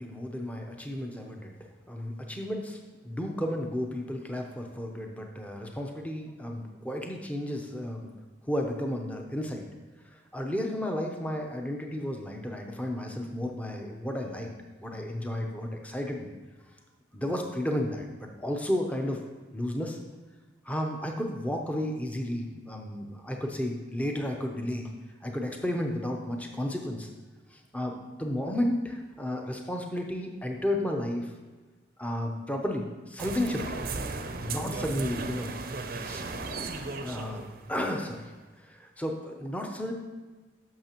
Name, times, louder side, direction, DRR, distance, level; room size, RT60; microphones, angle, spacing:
voice 1, 0.0-1.6 1.9-2.8 3.0-8.1 8.5-9.7 10.3-14.5 14.8-16.3 17.1-19.2 19.5-20.0 20.7-24.9 25.2-27.1 27.5-31.3 32.0-33.8 34.3-35.5 36.0-36.3 37.0-37.4 37.7-38.3 38.6-39.9, left 1 dB, 5° left, 2 dB, 0.6 m, -32 dB
sound 1, 33.2-38.3, right 3 dB, 50° right, 0.6 m, -36 dB
sound 2, 33.3-34.0 34.3-34.6 36.3-37.7, left 1 dB, 75° left, 1.1 m, -45 dB
10.5 x 6.6 x 3.0 m, 1.3 s
head